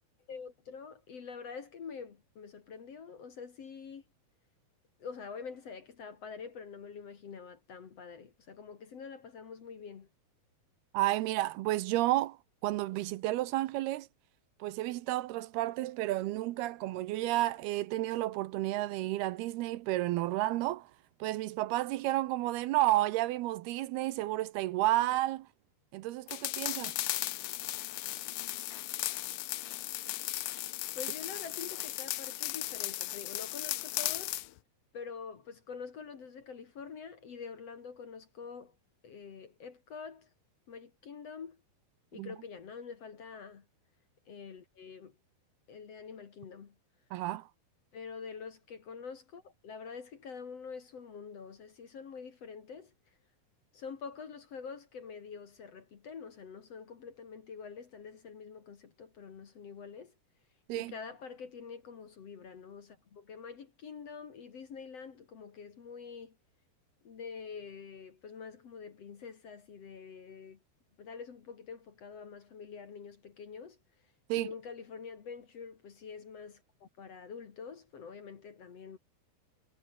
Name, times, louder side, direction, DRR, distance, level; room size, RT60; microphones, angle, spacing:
voice 1, 0.3-4.0 5.0-10.1 25.0-25.1 30.9-34.4 34.9-38.7 39.0-40.3 40.7-41.6 42.1-43.7 44.3-45.1 45.7-46.8 47.9-53.1 53.7-60.1 60.7-66.4 67.0-70.6 71.0-73.8 74.4-79.0, left 6 dB, 45° left, 2.6 m, -46 dB
voice 2, 10.9-14.1 14.6-20.9 21.2-25.5 25.9-27.0 42.2-42.3 47.1-47.5 60.7-60.9 74.3-74.5, right 16 dB, 80° right, 2.7 m, -31 dB
sound 1, 26.3-34.5, left 16 dB, 75° left, 1.9 m, -36 dB
omnidirectional pair, 4.6 m